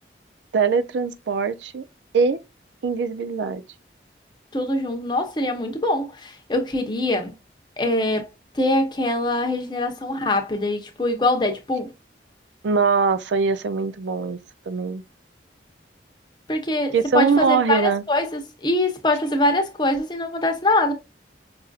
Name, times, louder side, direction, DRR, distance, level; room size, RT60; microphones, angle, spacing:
voice 1, 0.5-1.9 2.1-2.4 2.8-3.6 12.6-14.4 14.7-15.0 16.9-18.0, right 5 dB, 85° right, 0.4 m, -22 dB
voice 2, 4.5-7.3 7.8-8.3 8.5-11.9 16.5-20.9, left 1 dB, 25° left, 0.7 m, -23 dB
5.4 x 2.6 x 2.3 m
head